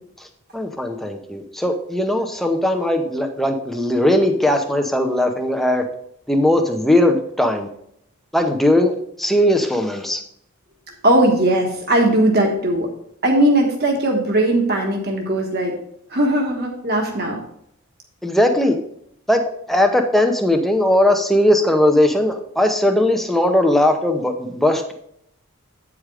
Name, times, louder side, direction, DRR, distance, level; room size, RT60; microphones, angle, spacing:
voice 1, 0.5-5.8 6.3-7.7 8.3-10.2 18.2-18.8 19.3-19.4 19.7-24.9, left 1 dB, ahead, 4 dB, 0.7 m, -18 dB
voice 2, 11.0-12.9 13.2-15.7 16.1-17.4, right 1 dB, 45° right, 1 dB, 1.3 m, -18 dB
8.8 x 4.9 x 4.8 m, 0.71 s
head